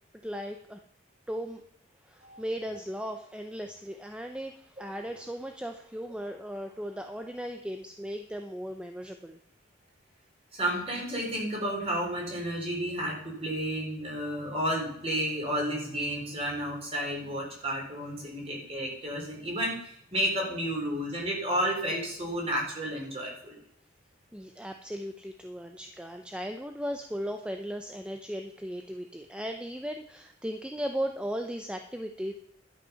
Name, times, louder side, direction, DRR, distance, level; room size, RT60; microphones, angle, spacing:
voice 1, 0.2-0.8 1.3-1.6 2.1-9.4 24.3-32.3, equal, 5° right, 5 dB, 0.6 m, -37 dB
voice 2, 10.5-23.6, equal, 30° right, -1 dB, 4.1 m, -31 dB
11.5 x 8.4 x 5.7 m, 0.71 s
head